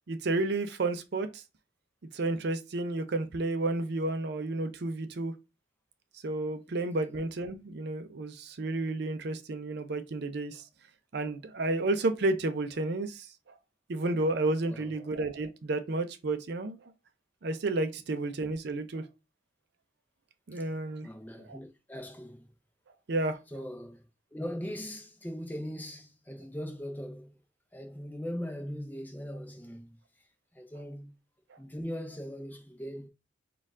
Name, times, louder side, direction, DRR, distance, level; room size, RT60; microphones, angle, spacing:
voice 1, 0.1-1.4 2.1-5.3 6.2-10.6 11.1-13.3 13.9-16.8 17.4-19.1 20.5-21.1 21.5-21.6 23.1-23.4, right 2 dB, 55° right, 0.5 m, -31 dB
voice 2, 14.7-15.1 20.5-20.7 21.0-22.5 23.5-24.0 24.3-27.3 27.7-30.0 30.5-31.1 31.6-33.1, equal, 10° left, 0.6 m, -40 dB
4.3 x 2.4 x 3.6 m
head